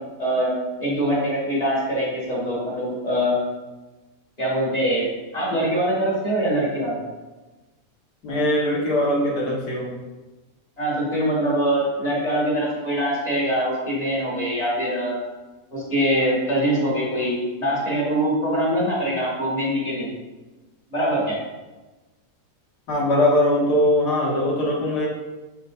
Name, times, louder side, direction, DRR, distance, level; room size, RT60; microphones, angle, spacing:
voice 1, 0.2-0.5 0.8-3.3 4.4-5.1 5.3-7.0 10.8-15.2 15.7-20.1 20.9-21.4, right 1 dB, 25° left, -6 dB, 2.2 m, -23 dB
voice 2, 8.2-9.9 22.9-25.1, left 1 dB, 90° left, -4 dB, 2.1 m, -21 dB
7.2 x 5.7 x 2.6 m, 1.2 s
omnidirectional pair, 1.7 m